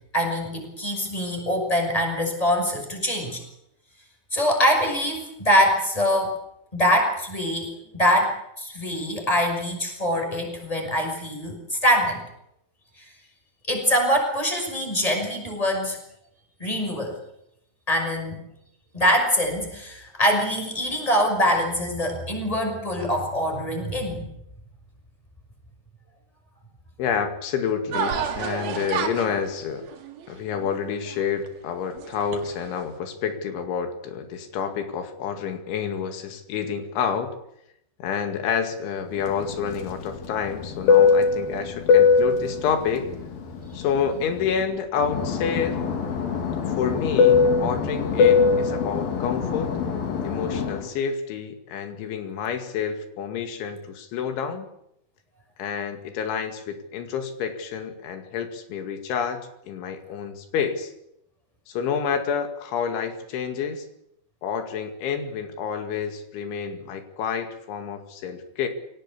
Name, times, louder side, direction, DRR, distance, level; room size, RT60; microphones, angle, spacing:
voice 1, 0.1-3.4 4.3-6.4 6.7-12.2 13.7-16.0 16.6-17.2 17.9-18.5 18.9-24.2, equal, 5° left, 3 dB, 5.8 m, -24 dB
voice 2, 27.0-29.9 30.3-37.4 38.0-43.1 43.7-45.8 46.7-49.7 50.2-54.7 55.6-60.9 61.7-63.9 64.4-68.7, left 7 dB, 80° left, 7 dB, 4.6 m, -29 dB
sound 1, 27.9-31.5 32.0-32.8, right 6 dB, 60° right, 3.8 m, -31 dB
Fixed-wing aircraft airplane, 39.3-44.6 45.0-50.8, left 5 dB, 55° left, 3.9 m, -21 dB
24.0 x 18.0 x 8.4 m, 0.79 s
omnidirectional pair, 5.3 m